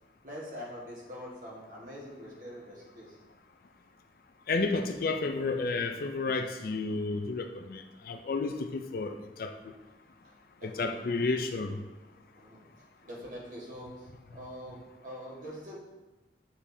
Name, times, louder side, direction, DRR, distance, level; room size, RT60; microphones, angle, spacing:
voice 1, 0.2-3.2 10.6-11.2 12.3-12.6 13.0-15.8, equal, 45° right, -5 dB, 1.5 m, -44 dB
voice 2, 4.5-9.5 10.6-11.8, left 3 dB, 55° left, 7 dB, 0.4 m, -31 dB
7.0 x 5.0 x 2.7 m, 1.1 s
head